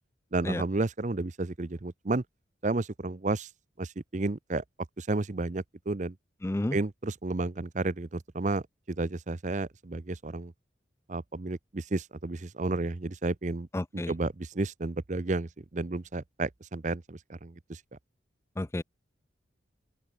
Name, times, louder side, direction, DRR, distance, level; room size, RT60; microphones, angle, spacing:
voice 1, 0.3-2.2 2.6-3.5 3.8-4.6 5.0-6.1 6.7-10.5 11.1-13.7 14.1-17.8, right 2 dB, 40° right, 0.7 m, -32 dB
voice 2, 6.4-6.8 13.7-14.2 18.6-18.8, left 1 dB, 15° left, 0.4 m, -31 dB
open air
head